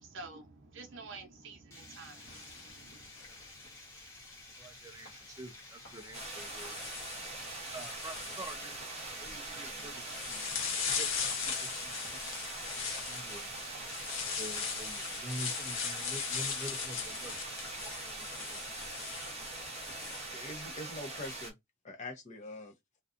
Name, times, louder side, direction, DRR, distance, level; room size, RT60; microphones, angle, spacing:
voice 1, 0.0-3.1, right 3 dB, 65° right, 0.8 m, -49 dB
Water, 1.7-16.7, left 2 dB, 15° left, 1.0 m, -53 dB
sound 1, 2.2-3.7 4.9-5.1 5.8-20.2, left 6 dB, 70° left, 0.8 m, -39 dB
voice 2, 4.6-6.9 7.7-10.7 11.0-13.6 14.4-17.3 17.6-18.6, right 1 dB, 15° right, 0.4 m, -47 dB
sound 2, 6.1-21.5, right 2 dB, 30° right, 0.8 m, -43 dB
voice 3, 19.8-21.5 21.8-22.7, left 1 dB, 35° left, 0.8 m, -44 dB
2.5 x 2.3 x 2.4 m
head